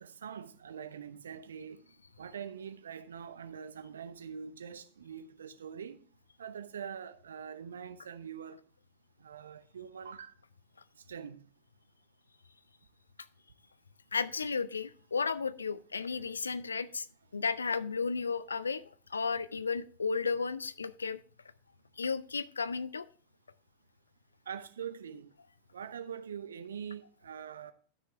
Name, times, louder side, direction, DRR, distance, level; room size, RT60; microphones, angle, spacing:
voice 1, 0.0-1.8 2.2-6.0 6.4-8.6 9.2-10.3 11.1-11.4 24.5-25.3 25.7-27.7, right 7 dB, 65° right, 0.8 m, -44 dB
voice 2, 14.1-17.1 17.3-18.8 19.1-21.2 22.0-23.1, left 5 dB, 75° left, 0.5 m, -33 dB
13.0 x 6.2 x 3.4 m
figure-of-eight pair, 90°, 0 cm